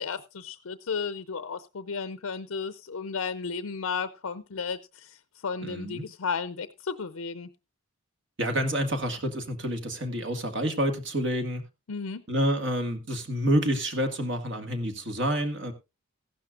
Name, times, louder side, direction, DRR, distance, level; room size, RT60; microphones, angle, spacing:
voice 1, 0.0-7.5 11.9-12.2, left 5 dB, 85° left, 0.6 m, -34 dB
voice 2, 5.6-6.0 8.4-11.6 12.3-15.7, equal, 55° right, 1.8 m, -28 dB
15.0 x 12.0 x 2.5 m
head